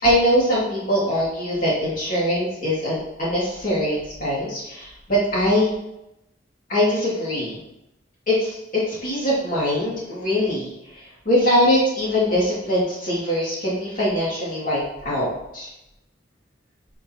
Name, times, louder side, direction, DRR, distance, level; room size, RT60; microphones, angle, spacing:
voice 1, 0.0-5.7 6.7-7.6 8.3-10.7 11.2-15.7, equal, 45° left, -7 dB, 2.6 m, -22 dB
10.5 x 5.4 x 3.0 m, 0.88 s
head